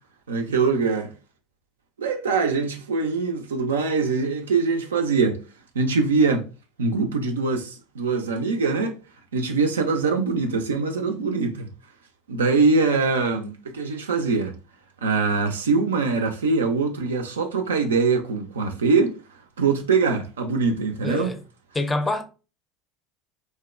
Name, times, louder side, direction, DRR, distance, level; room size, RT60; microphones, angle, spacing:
voice 1, 0.3-1.1 2.0-5.4 5.7-6.4 6.8-8.9 9.3-11.7 12.3-14.5 15.0-19.2 19.6-21.4, right 4 dB, 80° right, 0.4 m, -23 dB
voice 2, 21.0-21.4 21.7-22.2, left 2 dB, 15° left, 0.5 m, -25 dB
2.7 x 2.1 x 2.4 m
hypercardioid pair, 75°, 0 cm